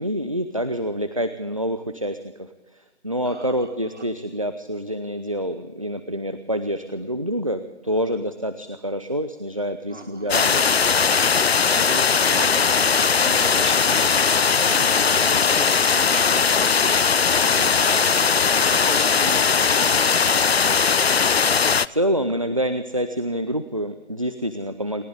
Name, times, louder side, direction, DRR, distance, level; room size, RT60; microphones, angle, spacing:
voice 1, 0.0-2.5 3.0-10.7 21.9-25.0, equal, 30° right, 11 dB, 0.6 m, -27 dB
voice 2, 3.2-4.1 9.9-10.3 11.5-14.2 14.6-20.4, right 3 dB, 90° right, 6 dB, 2.8 m, -37 dB
sound 1, 10.3-21.9, left 6 dB, 65° left, 0.6 m, -19 dB
29.0 x 11.5 x 4.0 m, 1.2 s
figure-of-eight pair, 175°, 34 cm